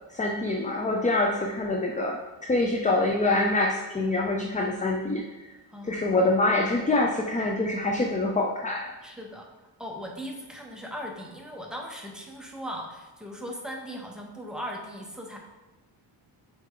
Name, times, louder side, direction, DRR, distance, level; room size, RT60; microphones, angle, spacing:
voice 1, 0.1-5.6 5.8-8.9, left 2 dB, 15° left, 1 dB, 0.4 m, -25 dB
voice 2, 5.7-6.4 9.0-9.5 9.8-15.4, equal, ahead, -1 dB, 0.9 m, -38 dB
6.6 x 4.2 x 3.8 m, 1.2 s
wide cardioid pair, 130°, 45 cm